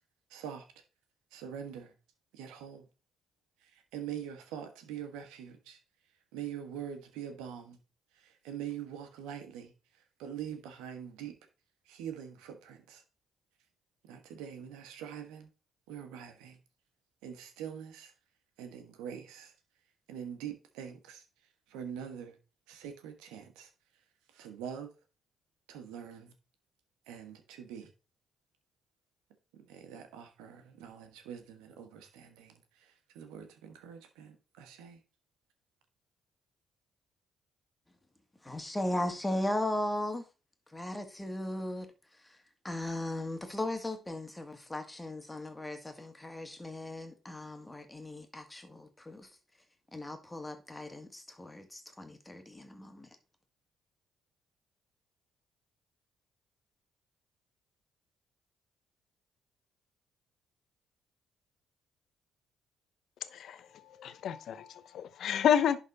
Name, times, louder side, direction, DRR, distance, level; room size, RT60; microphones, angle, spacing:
voice 1, 0.3-0.7 1.3-1.9 2.3-2.9 3.6-5.8 6.3-7.8 8.1-11.3 11.8-13.0 14.0-15.5 15.9-16.6 17.2-18.1 18.6-19.5 20.1-21.2 21.7-22.4 22.7-23.7 24.3-24.9 25.7-26.3 27.1-27.9 29.5-35.0, right 8 dB, 85° right, 1.5 m, -44 dB
voice 2, 38.4-40.2 40.7-41.9 42.6-49.3 49.9-53.1, left 1 dB, 15° left, 2.0 m, -37 dB
voice 3, 63.2-65.8, left 9 dB, 65° left, 0.8 m, -30 dB
11.0 x 4.1 x 4.1 m
hypercardioid pair, 55°, 0 cm